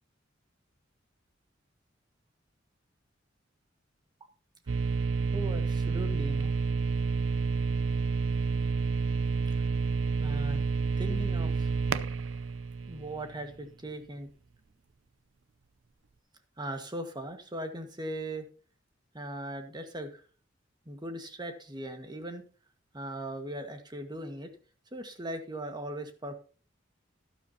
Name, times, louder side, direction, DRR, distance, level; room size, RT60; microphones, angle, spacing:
sound 1, 4.7-13.6, right 4 dB, 85° right, 0.6 m, -29 dB
voice 1, 5.3-6.5 9.6-9.7 10.2-10.6 11.0-11.7 12.9-14.3 16.6-18.5 19.1-20.2 20.8-22.4 22.9-24.5 24.9-26.3, right 1 dB, 20° right, 6 dB, 1.6 m, -39 dB
12.5 x 12.0 x 2.8 m, 0.37 s
head